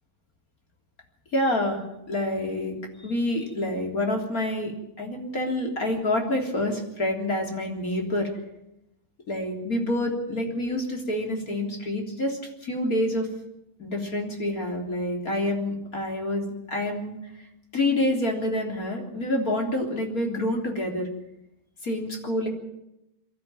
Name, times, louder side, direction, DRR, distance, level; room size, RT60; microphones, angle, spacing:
voice 1, 1.3-2.8 3.0-8.3 9.3-13.3 13.8-17.1 17.7-21.1 21.8-22.5, left 1 dB, 40° left, 2 dB, 4.0 m, -27 dB
23.0 x 13.5 x 9.2 m, 0.86 s
omnidirectional pair, 2.4 m